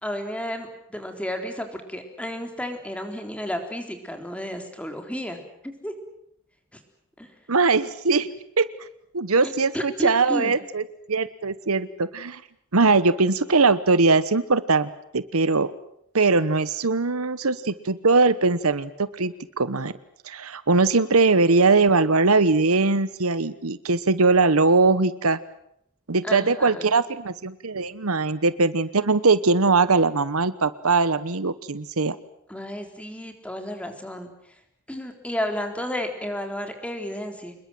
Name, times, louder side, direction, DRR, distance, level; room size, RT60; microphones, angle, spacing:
voice 1, 0.0-5.9 6.7-6.8 7.2-7.3 9.4-10.5 26.2-26.9 32.5-34.6 34.9-37.6, equal, 5° left, 5 dB, 3.7 m, -32 dB
voice 2, 7.5-8.3 8.6-8.7 9.1-10.8 11.1-12.4 12.7-15.7 16.1-19.9 20.2-25.4 26.1-32.2, right 3 dB, 75° right, 15 dB, 1.1 m, -21 dB
27.0 x 21.5 x 7.8 m, 0.71 s
head